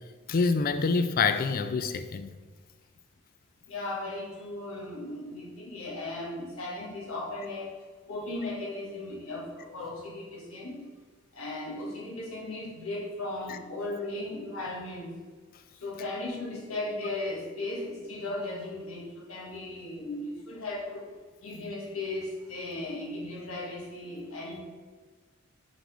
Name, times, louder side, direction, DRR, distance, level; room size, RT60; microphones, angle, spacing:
voice 1, 0.3-2.3 13.5-13.6, left 4 dB, 45° left, 0.4 m, -26 dB
voice 2, 3.7-7.7 8.1-10.9 11.3-15.2 15.7-21.1 21.4-24.6, left 2 dB, 75° left, 1.3 m, -36 dB
5.2 x 3.8 x 4.9 m
head